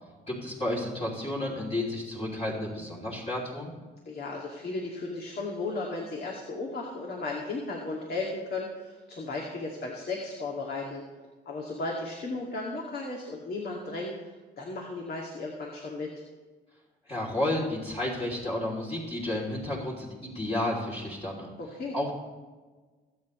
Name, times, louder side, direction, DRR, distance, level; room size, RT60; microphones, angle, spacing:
voice 1, 0.3-3.7 17.1-21.5 21.9-22.1, left 1 dB, 30° left, -5 dB, 3.1 m, -31 dB
voice 2, 4.1-11.0 11.5-16.1 21.6-22.0, left 3 dB, 50° left, -2 dB, 2.3 m, -35 dB
22.5 x 8.5 x 3.2 m, 1.3 s
cardioid pair, 90°, 20 cm